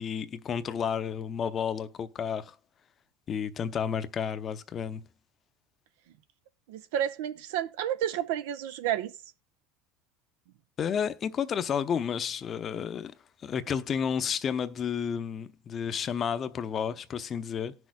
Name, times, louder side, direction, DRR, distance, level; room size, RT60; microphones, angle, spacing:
voice 1, 0.0-2.6 3.3-5.0 10.8-13.1 13.4-17.7, left 7 dB, 35° left, 0.7 m, -31 dB
voice 2, 6.7-9.1, right 11 dB, 80° right, 0.7 m, -30 dB
18.5 x 6.3 x 2.2 m
supercardioid pair, 115°, 0 cm